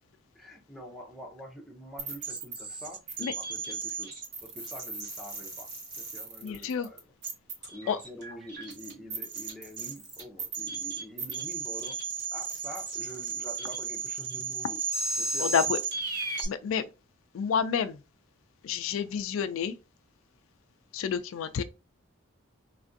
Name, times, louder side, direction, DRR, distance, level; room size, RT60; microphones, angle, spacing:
voice 1, 0.3-4.1 4.4-7.0 7.7-12.0 12.3-14.8 15.1-15.6, equal, ahead, 0.6 m, -46 dB
sound 1, 2.0-16.5, right 5 dB, 55° right, 1.3 m, -35 dB
voice 2, 6.4-6.9 7.9-8.0 15.4-15.8 16.5-16.9 17.3-18.0 18.6-19.7 20.9-21.6, left 7 dB, 75° left, 0.3 m, -29 dB
3.2 x 2.5 x 2.5 m
head